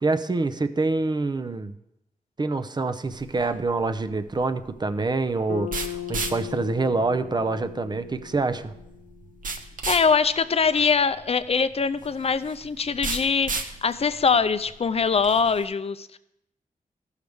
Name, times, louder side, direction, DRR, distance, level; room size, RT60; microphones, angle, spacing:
voice 1, 0.0-1.7 2.4-8.7, right 3 dB, 30° right, 11 dB, 0.6 m, -26 dB
sound 1, 3.1-15.6, right 3 dB, 70° right, 0.9 m, -36 dB
Bass guitar, 5.5-9.9, left 11 dB, 70° left, 0.9 m, -38 dB
voice 2, 9.9-16.2, left 5 dB, 45° left, 12 dB, 0.5 m, -23 dB
15.0 x 6.4 x 3.5 m, 0.85 s
wide cardioid pair, 90°, 15 cm